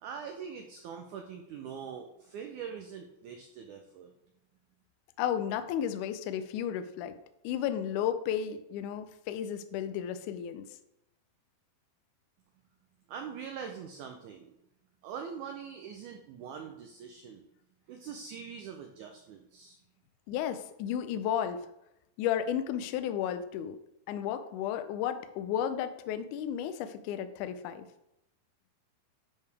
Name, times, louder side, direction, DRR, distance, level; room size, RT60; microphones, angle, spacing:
voice 1, 0.0-4.1 13.1-14.5 15.0-17.4 17.9-19.8, right 7 dB, 80° right, 4 dB, 1.8 m, -43 dB
voice 2, 5.2-7.2 7.4-10.7 20.3-21.6 22.2-23.8 24.1-27.9, left 9 dB, 90° left, 10 dB, 1.7 m, -33 dB
10.5 x 4.8 x 3.4 m, 0.84 s
omnidirectional pair, 4.2 m